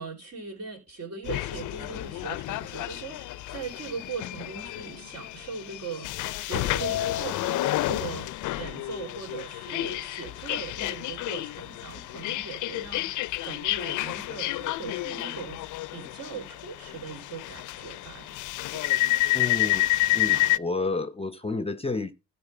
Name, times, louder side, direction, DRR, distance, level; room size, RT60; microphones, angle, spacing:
voice 1, 0.0-15.6 15.9-18.3 18.7-19.2, right 5 dB, 60° right, 4.1 m, -40 dB
sound 1, 1.3-20.6, left 17 dB, 80° left, 0.5 m, -30 dB
voice 2, 19.3-19.9 20.1-22.1, left 3 dB, 20° left, 0.7 m, -30 dB
12.5 x 4.5 x 5.7 m
cardioid pair, 90°, 30 cm